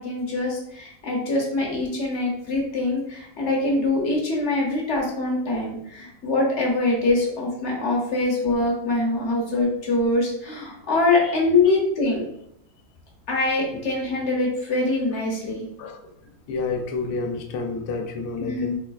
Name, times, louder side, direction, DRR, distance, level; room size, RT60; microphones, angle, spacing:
voice 1, 0.0-12.3 13.3-15.7 18.4-18.8, left 2 dB, 50° left, -2 dB, 1.0 m, -24 dB
voice 2, 16.5-18.7, left 4 dB, 80° left, 4 dB, 1.1 m, -29 dB
3.3 x 3.2 x 2.3 m, 0.74 s
omnidirectional pair, 1.8 m